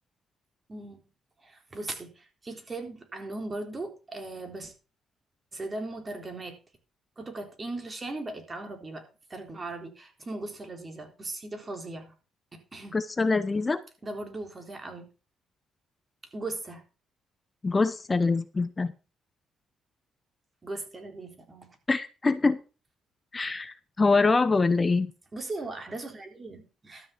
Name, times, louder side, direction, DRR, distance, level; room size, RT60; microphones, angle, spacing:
voice 1, 0.7-1.0 1.4-4.7 5.5-6.6 7.2-12.1 12.5-13.0 14.0-15.1 16.3-16.8 20.6-21.8 25.3-27.1, right 2 dB, 30° right, 3.8 m, -38 dB
voice 2, 12.9-13.8 17.6-18.9 21.9-22.6 23.3-25.1, left 3 dB, 25° left, 0.7 m, -24 dB
12.5 x 6.2 x 6.0 m
cardioid pair, 90°, 0 cm